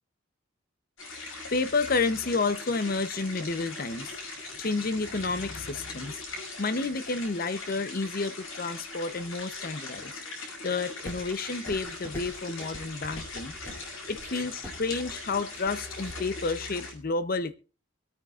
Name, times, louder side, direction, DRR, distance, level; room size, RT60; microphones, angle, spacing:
sound 1, 1.0-16.9, left 3 dB, 75° left, 5.9 m, -40 dB
voice 1, 1.5-4.1 4.6-6.2 6.6-10.2 10.6-13.5 14.1-17.5, left 3 dB, 45° left, 12 dB, 0.7 m, -30 dB
sound 2, 11.0-16.2, equal, 10° left, 5.3 m, -45 dB
25.0 x 9.2 x 2.4 m, 0.35 s
head